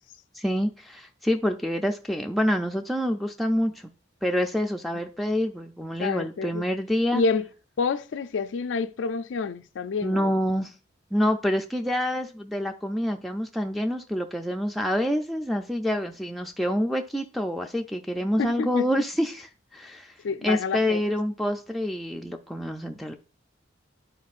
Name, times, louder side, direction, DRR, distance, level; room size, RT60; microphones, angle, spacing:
voice 1, 0.3-3.9 4.2-7.2 10.0-10.7 11.1-20.1 20.4-23.2, equal, ahead, 0.4 m, -27 dB
voice 2, 6.0-6.7 7.1-7.5 7.8-10.3 18.4-18.9 20.2-21.0, left 4 dB, 75° left, 0.4 m, -28 dB
11.0 x 4.3 x 2.5 m
head